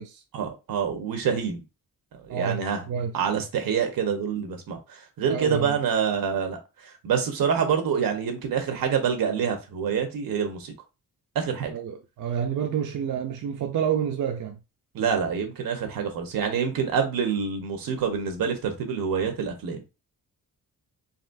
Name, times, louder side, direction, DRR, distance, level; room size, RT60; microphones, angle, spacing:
voice 1, 0.3-1.6 2.1-2.8 3.1-10.7 11.3-11.7 14.9-19.8, right 7 dB, 85° right, 1.2 m, -26 dB
voice 2, 2.3-3.1 5.3-5.7 11.7-14.6, right 8 dB, 60° right, 0.6 m, -29 dB
4.1 x 3.8 x 2.6 m
wide cardioid pair, 145°, 33 cm